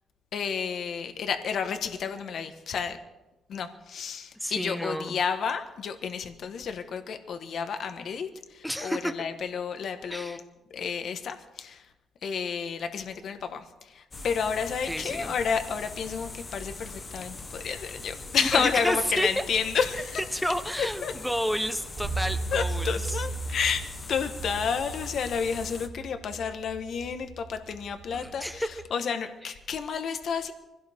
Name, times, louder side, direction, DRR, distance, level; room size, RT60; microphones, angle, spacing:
voice 1, 0.3-3.0 3.5-10.4 10.7-11.9 12.2-20.2 20.8-21.1 22.5-30.5, left 6 dB, 55° left, 7 dB, 1.4 m, -31 dB
voice 2, 4.4-5.2 8.6-9.1 10.1-10.4 14.9-15.3 18.4-19.3 20.3-23.0 28.1-28.7, equal, ahead, 9 dB, 1.1 m, -30 dB
sound 1, 14.1-25.9, left 3 dB, 25° left, 1.2 m, -41 dB
sound 2, 22.0-28.9, right 3 dB, 60° right, 4.2 m, -36 dB
24.5 x 16.5 x 3.6 m, 1.0 s
cardioid pair, 135°, 0 cm